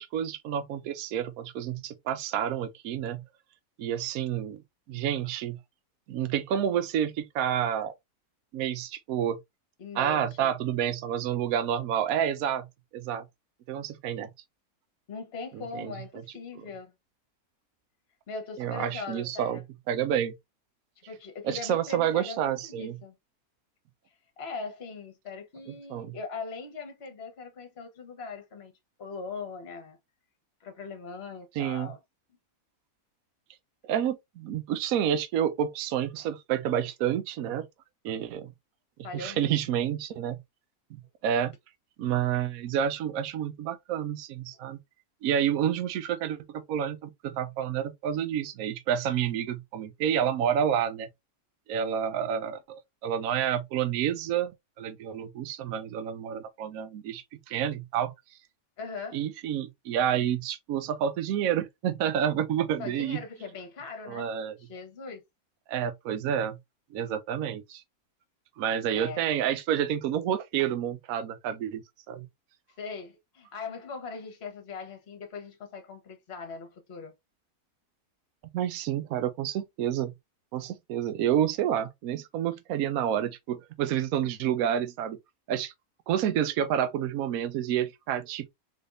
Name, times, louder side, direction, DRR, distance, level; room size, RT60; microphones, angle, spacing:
voice 1, 0.0-3.2 3.8-4.6 4.9-5.6 6.1-7.9 8.5-9.4 9.9-12.7 12.9-13.2 13.7-14.3 15.5-16.2 18.6-19.6 19.9-20.3 21.4-23.0 25.7-26.2 31.6-31.9 33.8-37.7 38.0-38.5 39.0-40.4 40.9-41.5 42.0-44.8 45.2-51.1 51.7-54.5 54.8-58.1 59.1-63.2 64.1-64.6 65.7-66.6 66.9-67.8 68.6-72.3 78.5-80.1 80.5-85.2 85.5-85.7 86.1-88.5, right 9 dB, 75° right, 1.0 m, -29 dB
voice 2, 9.8-10.5 15.1-16.9 18.3-19.6 21.0-23.2 24.4-28.7 29.0-30.0 30.6-32.0 39.0-39.8 58.8-59.2 62.8-64.3 64.6-65.2 68.9-69.3 72.8-77.1, left 4 dB, 45° left, 1.2 m, -40 dB
3.9 x 3.3 x 2.5 m
omnidirectional pair, 1.6 m